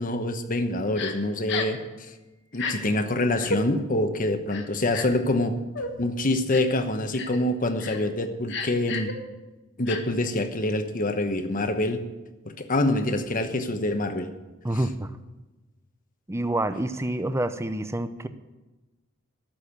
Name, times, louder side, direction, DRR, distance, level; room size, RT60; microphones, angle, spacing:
voice 1, 0.0-2.1 2.5-5.5 6.0-9.1 9.8-12.0 12.5-14.3, left 1 dB, 40° left, 8 dB, 1.0 m, -26 dB
Crying sobbing, 1.0-1.1 1.5-1.8 2.5-2.7 3.4-3.6 4.5-5.2 5.7-5.9 6.5-6.8 7.1-7.4 7.8-8.0 8.5-9.1 9.9-10.0, left 3 dB, 55° left, 1.4 m, -31 dB
voice 2, 14.6-15.2 16.3-18.3, right 1 dB, 15° right, 11 dB, 0.6 m, -27 dB
13.0 x 6.5 x 8.8 m, 1.1 s
head